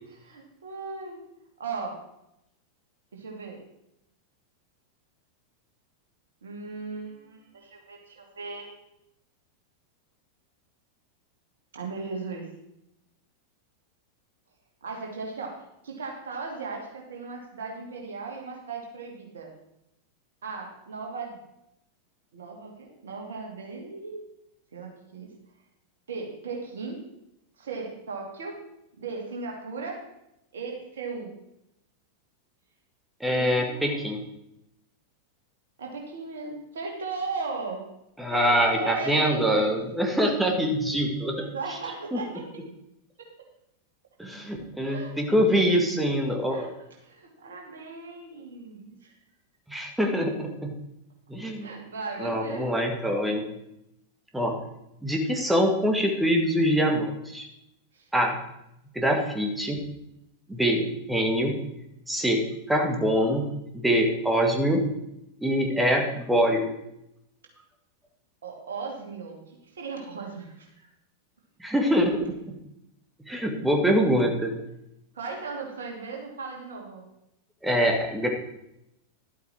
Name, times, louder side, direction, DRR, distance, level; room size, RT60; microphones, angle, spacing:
voice 1, 0.1-1.2 1.6-2.0 3.1-3.6 6.4-8.7 11.7-12.5 14.8-15.6 15.8-19.5 20.4-21.4 22.3-24.2 24.7-25.3 26.1-27.0 27.6-28.5 29.0-30.0 30.5-31.3 33.3-34.0 35.8-37.8 38.3-39.9 41.5-42.6 43.2-43.3 44.9-45.1 45.5-45.6 46.5-49.1 51.6-52.7 57.9-58.1 68.4-69.4 69.7-70.9 75.1-77.1, right 4 dB, 65° right, 0 dB, 2.8 m, -37 dB
voice 2, 33.2-34.2 38.2-41.5 42.1-42.2 44.2-46.7 49.7-50.7 51.3-51.7 52.2-53.4 54.3-54.6 55.0-57.5 58.1-58.4 58.9-59.8 60.5-61.6 62.1-62.4 62.7-63.5 63.7-64.8 65.4-66.7 71.6-72.6 73.3-74.5 77.6-78.3, equal, 5° right, 2 dB, 1.9 m, -24 dB
11.5 x 8.3 x 4.5 m, 0.83 s
figure-of-eight pair, 90°, 0 cm